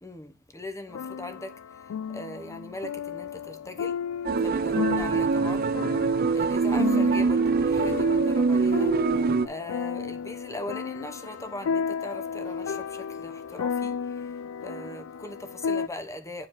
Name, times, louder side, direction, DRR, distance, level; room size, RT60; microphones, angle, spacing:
voice 1, 0.0-1.6 2.1-4.0 4.4-5.7 6.3-14.3 14.6-16.5, left 1 dB, 15° left, 0.9 m, -40 dB
sound 1, 0.9-15.9, left 7 dB, 80° left, 0.3 m, -34 dB
sound 2, 4.2-9.5, right 4 dB, 45° right, 0.4 m, -23 dB
9.4 x 4.8 x 3.7 m
head